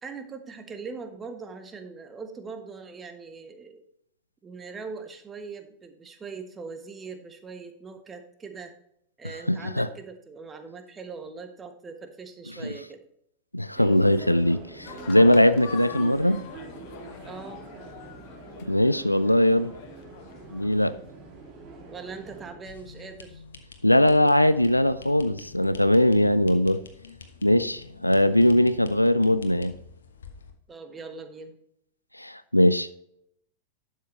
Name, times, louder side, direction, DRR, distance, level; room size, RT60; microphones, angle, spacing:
voice 1, 0.0-3.8 4.4-8.7 9.2-13.0 17.2-17.6 21.9-23.4 30.7-31.5, right 4 dB, 20° right, 6 dB, 1.4 m, -41 dB
voice 2, 9.5-9.9 12.6-12.7 13.5-16.4 18.7-19.7 20.5-20.9 23.8-26.8 27.4-29.7 32.2-32.9, left 1 dB, 85° left, 14 dB, 0.4 m, -20 dB
sound 1, 13.7-22.5, right 3 dB, 35° right, 3.0 m, -45 dB
sound 2, 14.8-21.5, left 8 dB, 50° left, 1.0 m, -45 dB
sound 3, 22.6-30.5, left 4 dB, 70° left, 1.2 m, -47 dB
12.0 x 7.5 x 3.3 m, 0.73 s
figure-of-eight pair, 90°, 0 cm